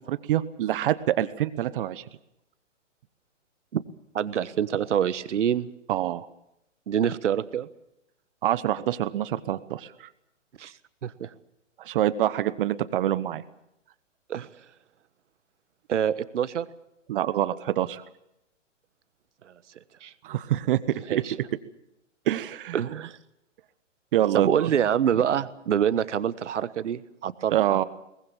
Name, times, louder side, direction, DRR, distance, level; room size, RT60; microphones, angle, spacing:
voice 1, 0.1-2.0 5.9-6.3 8.4-10.1 11.8-13.4 17.1-18.0 20.2-21.2 22.3-22.8 24.1-24.7 27.5-27.8, right 12 dB, 45° right, 15 dB, 1.0 m, -26 dB
voice 2, 4.1-5.7 6.9-7.7 10.6-10.7 11.0-11.3 14.3-14.5 15.9-16.7 20.0-20.1 21.1-21.3 22.7-23.2 24.3-27.8, right 9 dB, 70° right, 15 dB, 1.4 m, -26 dB
22.5 x 19.5 x 7.2 m, 0.82 s
hypercardioid pair, 135°, 38 cm